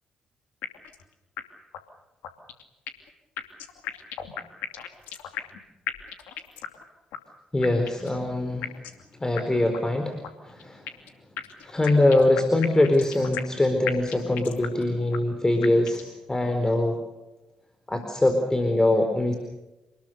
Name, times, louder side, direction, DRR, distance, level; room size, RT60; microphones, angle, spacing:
sound 1, 0.6-1.0 1.4-1.5 1.7-1.8 2.2-3.1 3.4-5.6 5.9-6.8 7.1-7.2 7.6-8.1 8.6-9.0 9.4-9.5 9.7-9.8 10.2-11.1 11.4-13.6 13.9-14.8 15.1-15.2 15.6-16.1, left 10 dB, 70° left, 2.6 m, -35 dB
voice 1, 7.5-8.7 9.1-10.2 10.4-10.9 11.6-17.0 17.9-19.3, left 1 dB, 20° left, 5 dB, 4.4 m, -23 dB
28.0 x 20.5 x 6.8 m, 1.0 s
hypercardioid pair, 45°, 3 cm